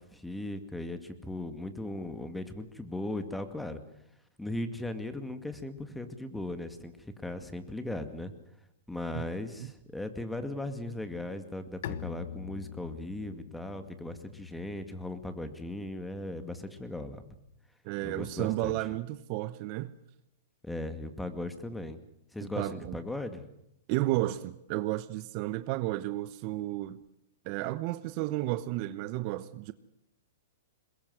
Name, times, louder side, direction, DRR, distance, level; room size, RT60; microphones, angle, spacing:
voice 1, 0.0-3.8 4.4-8.3 8.9-17.2 18.0-18.8 20.6-22.0 22.3-23.4, left 1 dB, 5° left, 2.2 m, -38 dB
Bowed string instrument, 11.8-17.4, left 9 dB, 60° left, 1.2 m, -45 dB
voice 2, 17.8-19.9 22.5-23.0 23.9-27.0 27.4-29.7, right 17 dB, 45° right, 1.0 m, -32 dB
22.0 x 21.0 x 7.9 m
hypercardioid pair, 130°, 0 cm